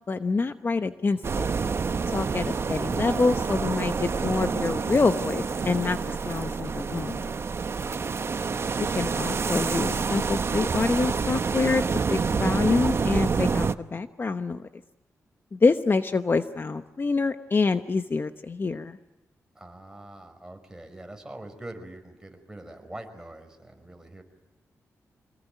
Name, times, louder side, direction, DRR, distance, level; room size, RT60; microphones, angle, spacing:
voice 1, 0.1-1.5 2.1-7.3 9.0-11.8 12.1-14.7 15.5-19.0, left 4 dB, 40° left, 9 dB, 0.9 m, -26 dB
sound 1, 1.2-13.7, right 5 dB, 50° right, 0.9 m, -28 dB
voice 2, 7.8-8.7 19.5-24.2, right 1 dB, 10° right, 5 dB, 5.5 m, -44 dB
26.5 x 20.0 x 9.3 m, 1.1 s
cardioid pair, 75°, 6 cm